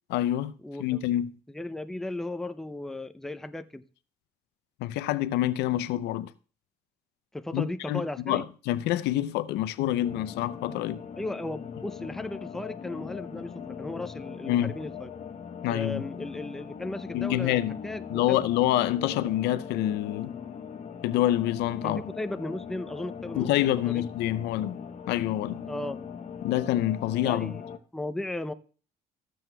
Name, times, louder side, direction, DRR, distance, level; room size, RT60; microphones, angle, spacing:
voice 1, 0.1-0.5 0.8-1.3 4.8-6.3 7.5-11.0 14.5-14.7 15.6-16.0 17.1-17.8 18.1-20.3 21.0-22.0 23.4-24.8 25.1-25.6 26.4-27.5, left 13 dB, 85° left, 0.5 m, -27 dB
voice 2, 0.6-1.0 1.5-3.8 7.3-8.5 11.2-15.1 15.7-18.4 21.8-24.0 25.7-26.0 27.2-27.6 27.9-28.5, left 2 dB, ahead, 0.4 m, -36 dB
sound 1, 10.0-27.8, left 7 dB, 40° left, 0.8 m, -40 dB
14.0 x 7.6 x 2.2 m
cardioid pair, 110°, 17 cm